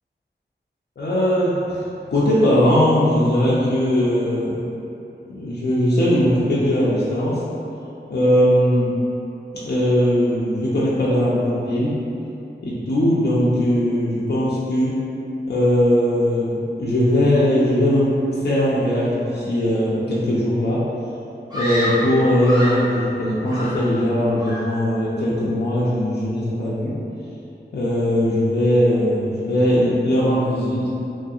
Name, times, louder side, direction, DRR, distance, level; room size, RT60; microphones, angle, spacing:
voice 1, 1.0-1.8 2.1-4.7 5.3-7.4 8.1-9.0 9.6-12.0 12.6-15.0 15.5-18.2 18.4-20.8 21.5-26.9 27.7-30.9, equal, 65° left, -8 dB, 0.5 m, -19 dB
Screaming, 21.5-22.9 23.4-24.1 24.4-24.8, equal, 20° right, 0.8 m, -28 dB
3.1 x 2.7 x 2.3 m, 2.9 s
wide cardioid pair, 75°, 18 cm